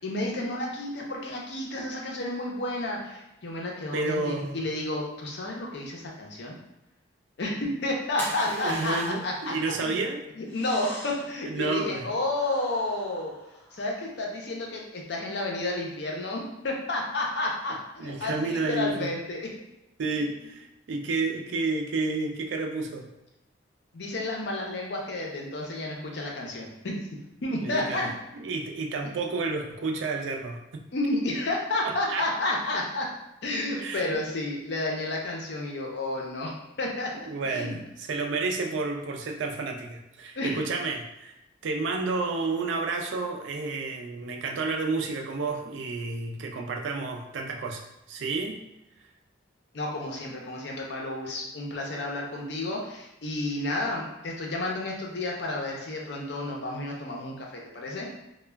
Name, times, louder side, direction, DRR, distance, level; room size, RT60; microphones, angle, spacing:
voice 1, 0.0-6.6 7.4-10.0 10.4-13.3 13.7-19.4 23.9-27.0 27.4-28.1 30.9-33.1 33.4-37.8 40.4-40.6 49.7-58.1, left 2 dB, 60° left, -1 dB, 0.5 m, -31 dB
voice 2, 3.9-4.6 8.5-10.2 11.4-12.1 18.0-19.1 20.0-23.1 27.6-28.0 28.3-30.6 31.8-32.2 33.8-34.2 37.3-41.4 41.6-48.6, right 3 dB, 70° right, 2 dB, 0.4 m, -30 dB
sound 1, 8.2-9.4 10.5-11.4 12.3-14.0, equal, 10° left, 0.4 m, -41 dB
2.2 x 2.1 x 3.2 m, 0.91 s
head